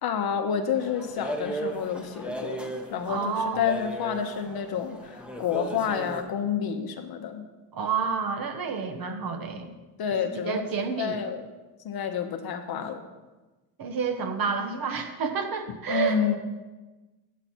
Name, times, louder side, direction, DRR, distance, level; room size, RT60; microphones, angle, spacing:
voice 1, 0.0-7.5 10.0-11.5 11.8-13.1 15.9-16.4, left 7 dB, 50° left, 6 dB, 1.0 m, -29 dB
sound 1, 0.7-6.2, right 2 dB, ahead, 1.0 m, -37 dB
voice 2, 3.1-3.6 7.7-9.7 10.4-11.2 13.8-16.4, right 5 dB, 45° right, 6 dB, 1.2 m, -29 dB
8.3 x 7.8 x 4.4 m, 1.2 s
supercardioid pair, 90°, 49 cm